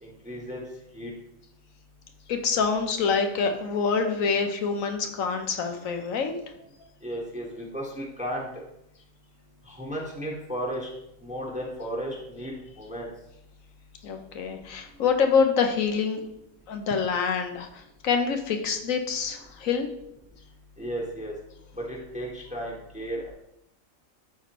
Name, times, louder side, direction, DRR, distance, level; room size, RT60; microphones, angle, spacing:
voice 1, 0.0-0.6 0.9-1.1 7.0-8.5 9.7-10.9 11.2-13.1 20.8-21.3 21.9-23.3, equal, 5° right, -3 dB, 1.3 m, -34 dB
voice 2, 2.3-6.4 14.0-16.2 16.7-19.9, left 5 dB, 80° left, 5 dB, 1.3 m, -26 dB
12.5 x 4.2 x 3.0 m, 0.81 s
omnidirectional pair, 1.4 m